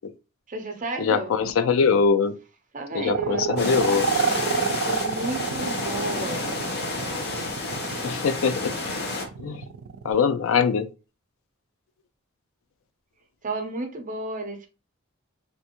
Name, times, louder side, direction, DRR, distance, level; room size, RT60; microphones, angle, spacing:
voice 1, 0.5-1.3 2.7-3.5 4.8-6.5 13.4-14.7, right 2 dB, 40° right, 0.7 m, -32 dB
voice 2, 1.0-2.3 2.9-4.1 8.0-8.7 9.4-9.6 10.0-10.9, left 5 dB, 75° left, 0.4 m, -22 dB
sound 1, 3.1-10.1, right 6 dB, 90° right, 0.4 m, -29 dB
sound 2, 3.6-9.3, left 3 dB, 55° left, 0.8 m, -30 dB
3.4 x 2.5 x 2.9 m
head